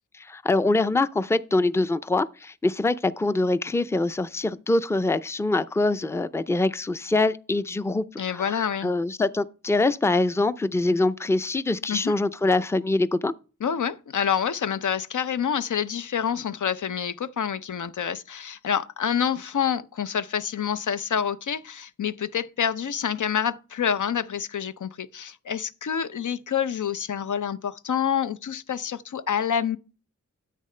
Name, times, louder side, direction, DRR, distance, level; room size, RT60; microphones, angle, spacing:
voice 1, 0.1-13.3, left 2 dB, 10° left, 0.5 m, -24 dB
voice 2, 8.2-8.9 11.9-12.1 13.6-29.8, left 8 dB, 75° left, 0.6 m, -27 dB
10.0 x 8.4 x 3.3 m
wide cardioid pair, 65°, 30 cm